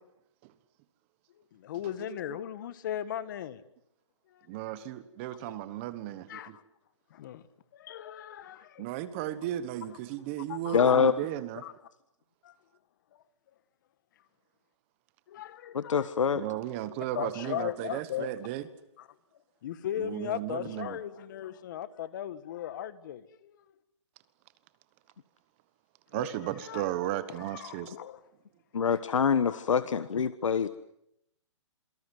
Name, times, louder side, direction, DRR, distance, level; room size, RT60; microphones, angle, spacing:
voice 1, 1.5-3.6 4.3-4.5 5.2-5.4 6.3-6.6 7.1-7.4 7.7-8.9 10.5-11.0 11.6-11.7 12.4-12.5 13.1-13.2 15.3-16.1 17.1-18.3 19.0-19.1 19.6-23.6 26.1-28.2 29.0-29.7, left 10 dB, 40° left, 1.7 m, -38 dB
voice 2, 4.5-6.6 8.8-11.6 16.3-18.6 20.0-21.0 26.1-27.9, right 13 dB, 25° right, 1.3 m, -35 dB
voice 3, 10.7-11.1 15.7-16.4 28.7-30.7, left 6 dB, 80° left, 1.3 m, -25 dB
27.5 x 24.0 x 7.9 m
hypercardioid pair, 165°, 16 cm